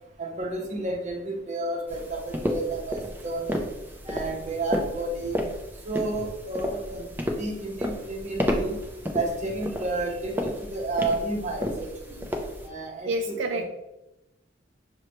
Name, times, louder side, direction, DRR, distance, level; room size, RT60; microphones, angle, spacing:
voice 1, 0.2-3.7 4.0-5.4 5.8-7.1 7.4-8.8 9.1-12.2 12.6-13.6, right 2 dB, 40° right, 1 dB, 0.7 m, -31 dB
sound 1, 1.9-12.7, equal, 10° right, 0.4 m, -32 dB
voice 2, 13.1-13.6, right 2 dB, 75° right, 4 dB, 0.3 m, -28 dB
6.2 x 2.1 x 3.0 m, 0.95 s
head